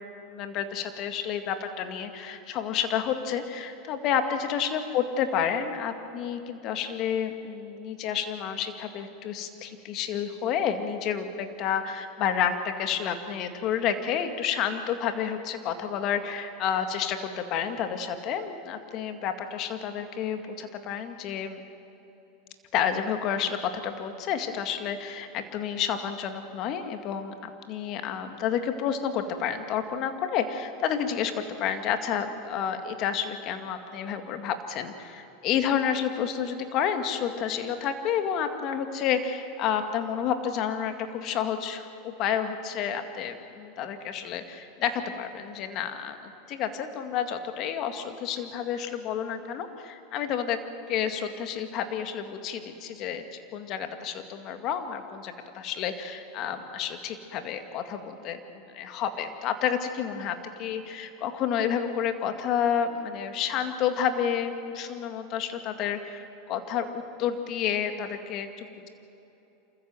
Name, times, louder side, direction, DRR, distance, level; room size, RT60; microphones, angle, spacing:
voice 1, 0.3-21.6 22.7-50.6 50.9-53.2 53.5-68.9, left 8 dB, 50° left, 8 dB, 2.0 m, -30 dB
27.0 x 14.5 x 7.8 m, 3.0 s
hypercardioid pair, 100°, 0 cm